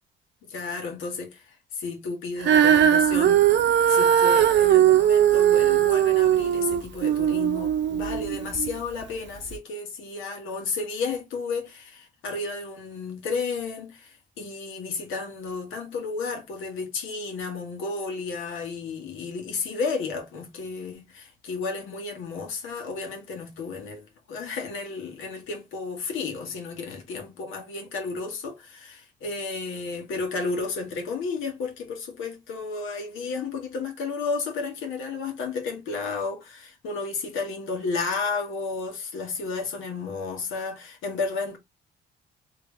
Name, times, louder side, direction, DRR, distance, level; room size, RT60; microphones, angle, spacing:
voice 1, 0.4-41.6, left 4 dB, 85° left, 1.7 m, -32 dB
Female singing, 2.4-8.7 9.4-9.5, right 10 dB, 65° right, 0.7 m, -19 dB
3.3 x 3.2 x 3.3 m
cardioid pair, 90°, 20 cm